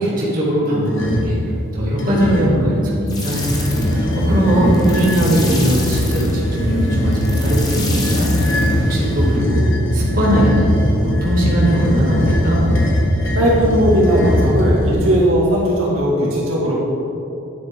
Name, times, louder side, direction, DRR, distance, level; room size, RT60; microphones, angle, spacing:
voice 1, 0.0-1.4 1.7-9.6 9.9-10.7 11.0-12.7, right 1 dB, 40° right, -7 dB, 2.4 m, -20 dB
sound 1, 0.9-1.4 2.0-2.6 3.2-15.2, left 1 dB, 65° left, 1.5 m, -19 dB
sound 2, 3.1-9.4, left 1 dB, 20° left, 1.1 m, -28 dB
voice 2, 13.3-16.8, equal, 85° right, -6 dB, 2.1 m, -17 dB
9.8 x 8.5 x 3.7 m, 2.7 s
head